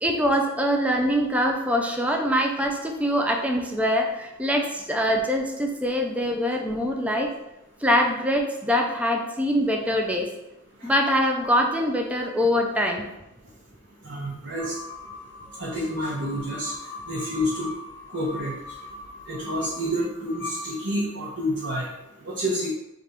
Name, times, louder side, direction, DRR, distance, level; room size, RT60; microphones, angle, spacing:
voice 1, 0.0-7.3 7.8-10.3 10.8-13.0, equal, 5° right, 2 dB, 0.4 m, -23 dB
voice 2, 14.0-14.7 15.6-16.7 17.1-17.7 18.1-18.6 19.3-21.9 22.2-22.7, equal, 55° right, -7 dB, 0.8 m, -28 dB
sound 1, 14.6-21.3, left 3 dB, 55° left, 0.6 m, -40 dB
3.4 x 2.5 x 4.2 m, 0.92 s
head